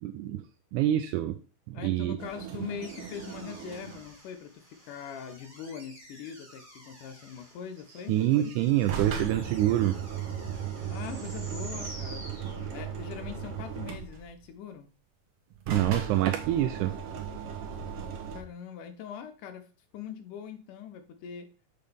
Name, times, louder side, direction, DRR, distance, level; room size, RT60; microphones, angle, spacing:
voice 1, 0.0-0.4 0.7-1.4 1.7-2.2 8.1-10.0 15.7-16.9, right 13 dB, 80° right, 7 dB, 2.0 m, -26 dB
voice 2, 1.7-8.2 10.9-12.3 12.7-14.9 18.3-19.7 19.9-21.5, left 8 dB, 80° left, 8 dB, 2.5 m, -42 dB
sound 1, 2.2-4.2 8.6-14.4 15.5-18.4, right 7 dB, 60° right, 1.7 m, -37 dB
sound 2, 2.8-13.1, right 1 dB, 15° right, 2.6 m, -50 dB
6.8 x 6.4 x 3.4 m, 0.34 s
omnidirectional pair, 3.7 m